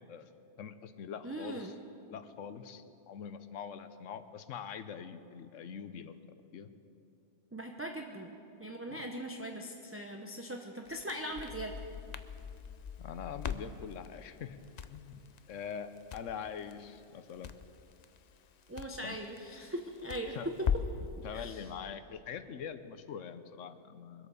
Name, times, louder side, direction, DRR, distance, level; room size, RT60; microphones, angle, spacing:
voice 1, 0.6-1.7 2.1-6.1 6.5-6.7 8.9-9.1 13.0-14.6 14.9-15.2 15.5-17.5 19.0-19.2 20.3-20.5 21.2-24.3, left 7 dB, 80° left, 11 dB, 1.1 m, -43 dB
voice 2, 1.2-1.7 7.5-8.3 8.6-11.7 18.7-20.4 21.3-21.6, right 1 dB, 15° right, 3 dB, 0.6 m, -40 dB
Crackle, 10.9-21.1, left 7 dB, 50° left, 0.5 m, -41 dB
22.5 x 8.6 x 6.9 m, 2.8 s
omnidirectional pair, 1.3 m